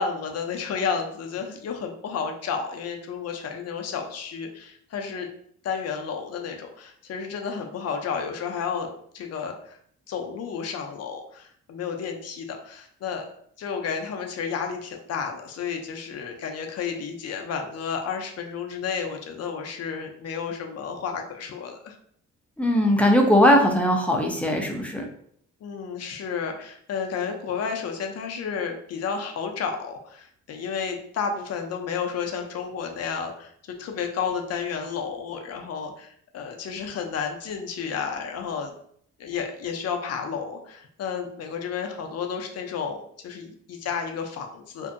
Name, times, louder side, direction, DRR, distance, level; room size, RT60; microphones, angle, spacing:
voice 1, 0.0-5.3 5.6-9.8 10.1-13.2 13.6-22.0 25.6-38.7 39.2-44.9, left 6 dB, 55° left, 3 dB, 0.5 m, -31 dB
voice 2, 22.6-25.1, equal, 5° left, 2 dB, 0.5 m, -19 dB
2.6 x 2.1 x 2.5 m, 0.63 s
cardioid pair, 90°, 30 cm